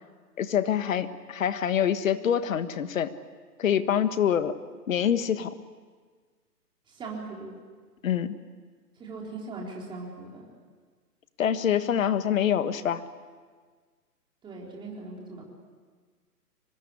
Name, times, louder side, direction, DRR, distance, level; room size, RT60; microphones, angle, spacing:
voice 1, 0.4-3.1 3.6-4.5 4.9-5.5 8.0-8.4 11.4-13.0, left 9 dB, 55° left, 11 dB, 1.5 m, -25 dB
voice 2, 6.9-7.5 9.0-10.5 14.4-15.6, right 3 dB, 10° right, -3 dB, 4.0 m, -39 dB
24.5 x 20.5 x 9.7 m, 1.5 s
hypercardioid pair, 155°, 49 cm